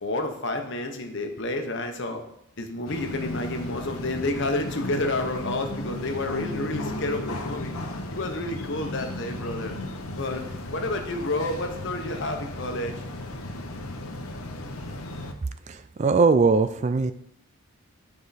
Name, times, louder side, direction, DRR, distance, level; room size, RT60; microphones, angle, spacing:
voice 1, 0.0-2.2 2.6-7.7 8.1-9.7 10.2-10.4 10.7-13.0, left 2 dB, 55° left, 4 dB, 1.1 m, -30 dB
sound 1, 2.9-15.3, left 1 dB, 75° left, 1.0 m, -35 dB
voice 2, 15.7-17.1, right 4 dB, 30° right, 12 dB, 0.3 m, -21 dB
10.5 x 4.9 x 4.1 m, 0.74 s
head